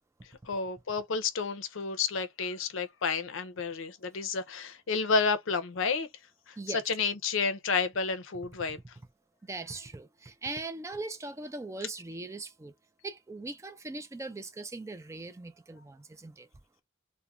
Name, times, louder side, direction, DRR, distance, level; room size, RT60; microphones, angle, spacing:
voice 1, 0.5-6.1 6.5-8.8, left 5 dB, 65° left, 0.5 m, -30 dB
voice 2, 9.4-12.7 13.0-16.5, right 3 dB, 15° right, 0.3 m, -40 dB
2.4 x 2.1 x 2.9 m
head